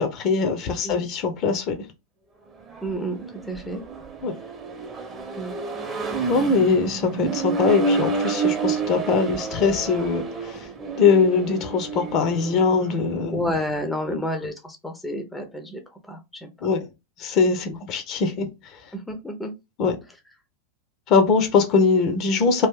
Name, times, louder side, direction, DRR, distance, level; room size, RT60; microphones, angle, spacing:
voice 1, 0.0-1.9 4.2-4.4 6.3-10.7 11.0-13.5 14.1-14.2 16.6-16.9 17.2-18.5 19.8-20.0 21.1-22.7, left 5 dB, 35° left, 0.7 m, -22 dB
Accelerating revving vroom, 2.6-13.0, right 4 dB, 20° right, 0.9 m, -29 dB
voice 2, 2.8-3.8 5.4-5.6 13.3-16.7 17.7-17.8 18.9-19.5, equal, 5° left, 0.7 m, -30 dB
2.9 x 2.6 x 3.7 m
figure-of-eight pair, 90°, 0 cm